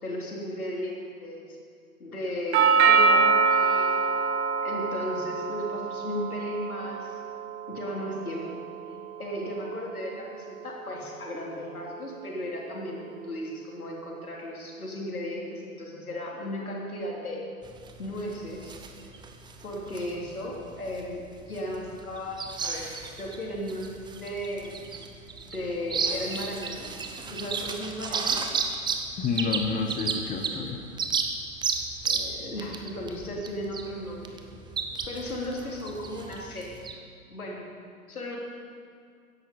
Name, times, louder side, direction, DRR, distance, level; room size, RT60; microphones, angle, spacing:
voice 1, 0.0-1.6 2.0-4.0 4.6-7.2 7.7-8.5 9.2-17.5 18.0-18.7 19.6-24.9 25.4-28.5 32.0-34.4 35.1-36.7 37.3-37.6 38.1-38.4, left 1 dB, 80° left, -2 dB, 3.4 m, -35 dB
Doorbell, 2.5-10.6, right 5 dB, 50° right, 1.2 m, -26 dB
sound 1, 17.6-36.9, right 5 dB, 10° right, 0.8 m, -34 dB
voice 2, 29.2-30.8, left 5 dB, 20° left, 3 dB, 1.1 m, -29 dB
15.0 x 10.5 x 5.4 m, 2.2 s
figure-of-eight pair, 110°, 43 cm